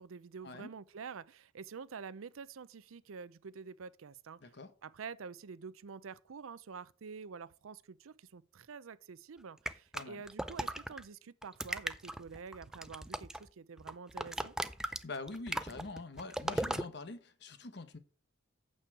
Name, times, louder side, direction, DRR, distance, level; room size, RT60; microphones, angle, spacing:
voice 1, 0.0-4.5 4.8-14.5, right 5 dB, 90° right, 0.5 m, -48 dB
voice 2, 4.4-4.7 9.9-10.2 14.8-18.0, left 3 dB, 55° left, 1.0 m, -45 dB
sound 1, 9.7-11.0 11.4-13.5 13.8-16.8, right 1 dB, 5° right, 0.3 m, -37 dB
8.7 x 6.9 x 4.7 m
head